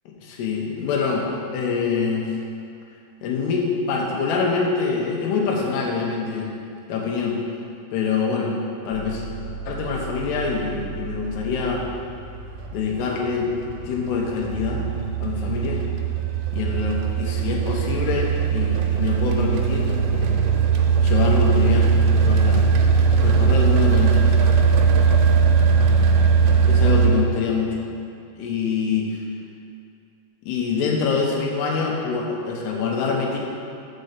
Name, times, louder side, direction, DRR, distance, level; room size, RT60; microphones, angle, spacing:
voice 1, 0.1-1.2 1.5-2.3 3.2-6.5 6.9-7.4 7.9-8.5 8.9-9.2 9.7-11.8 12.7-13.5 13.8-14.8 15.2-15.8 16.5-20.4 21.0-22.7 23.2-24.2 26.7-27.8 28.4-29.1 30.5-33.4, left 5 dB, 75° left, -1 dB, 2.7 m, -25 dB
sound 1, 8.9-27.1, right 5 dB, 90° right, 2.9 m, -20 dB
5.6 x 5.2 x 6.5 m, 2.4 s
omnidirectional pair, 5.0 m